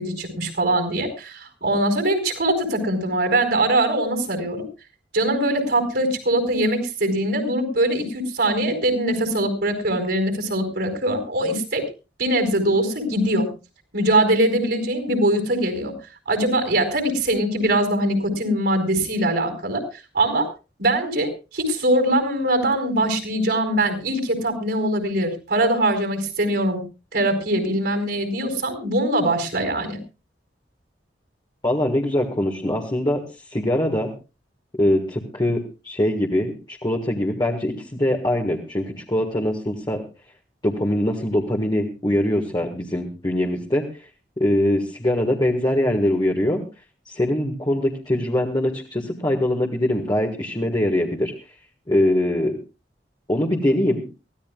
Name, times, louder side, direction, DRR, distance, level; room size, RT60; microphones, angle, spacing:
voice 1, 0.0-4.6 5.1-11.8 12.2-13.5 13.9-15.9 16.3-19.8 20.1-20.5 20.8-26.8 27.1-30.0, right 1 dB, 70° right, 5 dB, 4.9 m, -22 dB
voice 2, 31.6-33.2 33.5-34.1 34.8-40.0 40.6-44.1 44.4-46.6 47.0-51.3 51.9-52.6 53.3-54.0, left 1 dB, 25° left, 0 dB, 1.8 m, -22 dB
23.5 x 16.0 x 2.4 m, 0.31 s
head